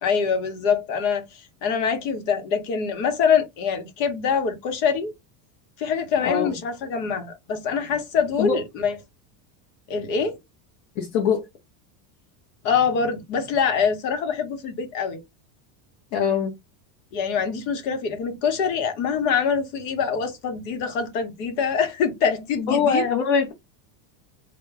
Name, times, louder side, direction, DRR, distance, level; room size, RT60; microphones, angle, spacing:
voice 1, 0.0-5.1 5.8-9.0 9.9-10.4 12.6-15.2 17.1-23.1, left 6 dB, 70° left, 1.0 m, -24 dB
voice 2, 6.2-6.5 8.4-8.6 11.0-11.4 16.1-16.5 22.7-23.5, left 6 dB, 45° left, 0.6 m, -22 dB
2.2 x 2.1 x 3.4 m
cardioid pair, 170°, 50 cm